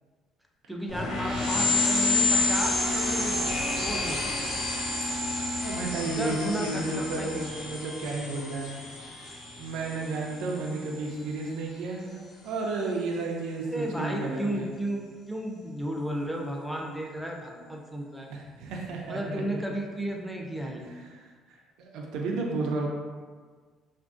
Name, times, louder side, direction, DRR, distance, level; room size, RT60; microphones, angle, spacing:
voice 1, 0.7-3.4 3.8-4.3 6.0-7.5 13.7-18.3 19.1-20.9, right 1 dB, ahead, 0 dB, 0.4 m, -33 dB
sound 1, 0.9-11.0, left 3 dB, 85° left, 0.9 m, -29 dB
voice 2, 5.6-9.3 9.6-14.7 18.3-19.6 20.9-22.9, right 3 dB, 80° right, -1 dB, 0.4 m, -33 dB
3.0 x 2.5 x 2.4 m, 1.6 s
cardioid pair, 135°, 0 cm